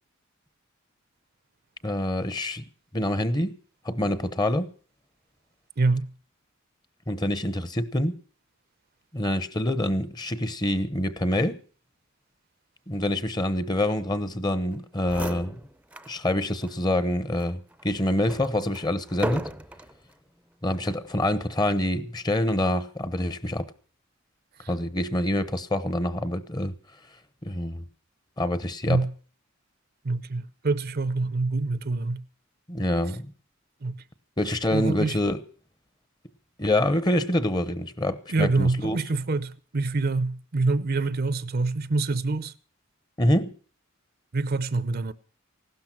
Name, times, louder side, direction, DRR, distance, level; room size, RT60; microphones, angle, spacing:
voice 1, 1.8-2.6 2.9-3.6 3.8-4.7 7.1-8.1 9.1-11.6 12.9-15.6 16.1-19.5 20.6-23.7 24.7-26.7 27.4-27.8 28.4-29.0 32.7-33.3 34.4-35.4 36.6-39.0 43.2-43.5, left 1 dB, 20° left, 0.9 m, -26 dB
voice 2, 5.8-6.1 24.6-24.7 28.9-29.1 30.0-32.2 33.8-34.0 34.7-35.2 38.3-42.5 44.3-45.1, right 3 dB, 50° right, 0.7 m, -26 dB
sound 1, 14.7-14.8 15.0-16.2 16.6-16.7 17.4-20.0 20.7-21.1, right 1 dB, 5° right, 0.6 m, -36 dB
16.0 x 12.5 x 5.9 m
head